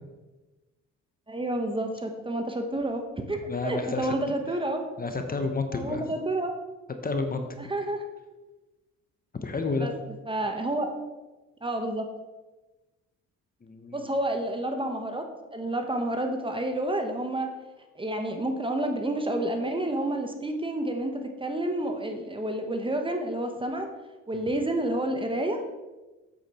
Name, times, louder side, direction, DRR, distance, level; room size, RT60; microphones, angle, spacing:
voice 1, 1.3-4.9 5.7-6.6 7.6-8.0 9.8-9.9 10.3-11.0 11.6-12.1 13.9-17.5 17.9-23.9 24.3-25.6, right 1 dB, 15° right, 5 dB, 1.1 m, -29 dB
voice 2, 3.5-4.1 5.0-6.0 7.0-7.5 9.4-9.9 13.6-14.1 24.3-24.4, left 3 dB, 30° left, 6 dB, 1.0 m, -30 dB
8.2 x 7.4 x 4.3 m, 1.1 s
cardioid pair, 90°, 30 cm